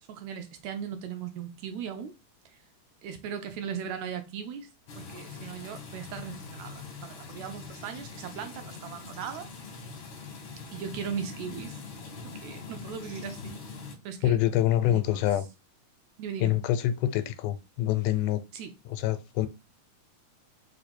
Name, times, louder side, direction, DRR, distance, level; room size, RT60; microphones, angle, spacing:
voice 1, 0.1-2.1 2.5-2.6 3.0-4.7 5.0-9.5 10.7-11.8 12.2-13.6 14.1-14.4 14.8-15.2 16.2-16.5 18.5-18.8, right 7 dB, 80° right, 1.7 m, -38 dB
sound 1, 4.9-13.9, left 4 dB, 70° left, 1.2 m, -43 dB
voice 2, 14.2-15.5 16.4-18.4 18.9-19.5, left 12 dB, 85° left, 2.0 m, -26 dB
4.6 x 2.6 x 4.3 m
omnidirectional pair, 3.5 m